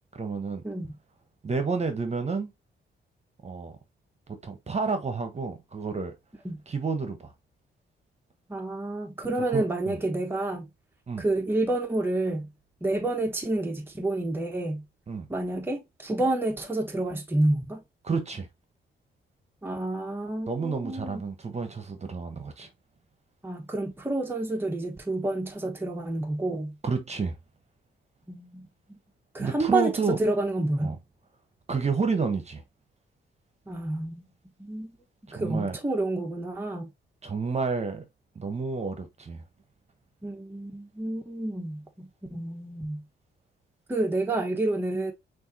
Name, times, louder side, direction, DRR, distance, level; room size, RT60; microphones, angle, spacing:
voice 1, 0.1-0.6 1.4-2.5 3.4-3.8 4.3-6.1 6.7-7.3 9.5-10.0 11.1-11.2 15.1-15.3 18.0-18.5 20.5-22.7 26.8-27.3 29.4-30.2 30.8-31.0 31.7-32.6 35.3-35.8 37.2-38.1 38.3-39.4, right 4 dB, 35° right, 1.1 m, -30 dB
voice 2, 8.5-10.7 11.2-12.5 12.8-14.8 15.3-17.8 19.6-21.2 23.4-26.8 28.3-28.7 29.3-31.0 33.7-34.2 34.6-35.0 35.3-36.9 40.2-43.0 43.9-45.1, right 2 dB, 10° right, 1.0 m, -29 dB
6.2 x 2.7 x 2.8 m
cardioid pair, 110°, 20 cm